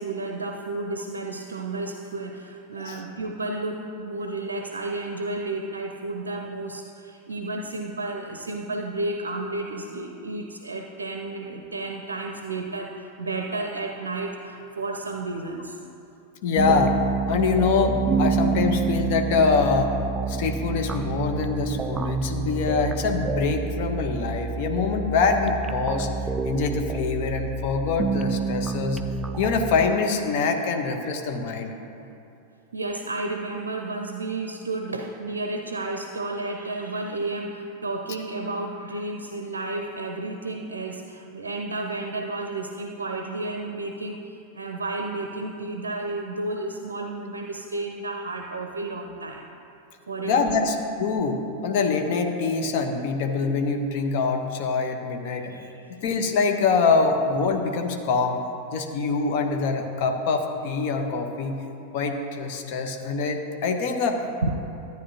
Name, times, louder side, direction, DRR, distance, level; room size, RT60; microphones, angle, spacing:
voice 1, 0.0-15.8 32.7-49.5 50.1-50.8 55.4-56.0 64.4-64.5, right 2 dB, 70° right, 3 dB, 0.5 m, -32 dB
voice 2, 16.4-17.0 17.3-19.9 20.3-26.1 26.5-29.0 29.4-31.7 50.2-55.5 55.9-58.4 58.7-61.6 61.9-64.5, left 4 dB, 50° left, 4 dB, 0.8 m, -24 dB
sound 1, 16.6-29.9, right 4 dB, 15° right, 0.3 m, -28 dB
12.5 x 9.1 x 2.7 m, 2.8 s
figure-of-eight pair, 90°, 0 cm